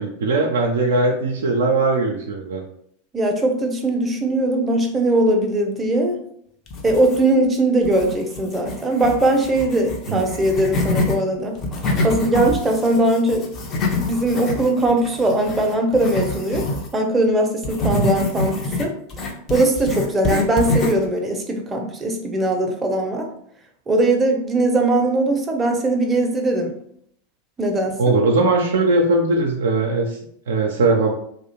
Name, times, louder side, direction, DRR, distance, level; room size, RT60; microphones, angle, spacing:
voice 1, 0.0-2.6 10.1-10.3 17.9-18.1 28.0-30.2 30.5-31.1, right 3 dB, 75° right, 1 dB, 0.3 m, -19 dB
voice 2, 3.1-6.2 6.8-11.6 12.0-13.5 13.9-18.9 19.5-23.3 23.9-26.7 27.6-28.2, right 1 dB, 15° right, 2 dB, 0.5 m, -20 dB
sound 1, 6.7-7.5 7.8-11.2 11.5-16.9 17.6-21.1, left 2 dB, 35° left, 0.5 m, -26 dB
2.3 x 2.1 x 2.9 m, 0.68 s
hypercardioid pair, 95°, 0 cm